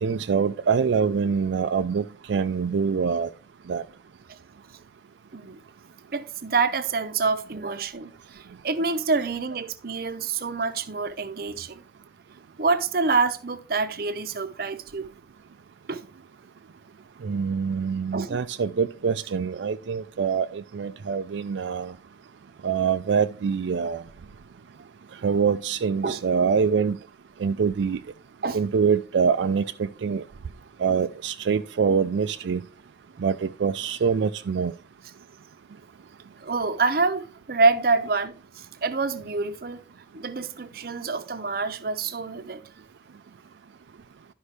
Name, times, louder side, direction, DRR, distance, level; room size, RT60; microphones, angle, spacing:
voice 1, 0.0-3.3 3.7-3.8 17.2-21.9 22.6-24.0 25.2-27.0 27.4-28.0 28.5-30.2 30.8-32.6 33.2-34.7, right 6 dB, 90° right, 0.4 m, -25 dB
voice 2, 6.1-11.8 12.6-15.1 15.9-16.0 18.1-18.4 26.0-26.2 28.4-28.6 36.4-39.8 40.1-42.6, right 4 dB, 55° right, 0.7 m, -26 dB
11.5 x 5.3 x 3.3 m
head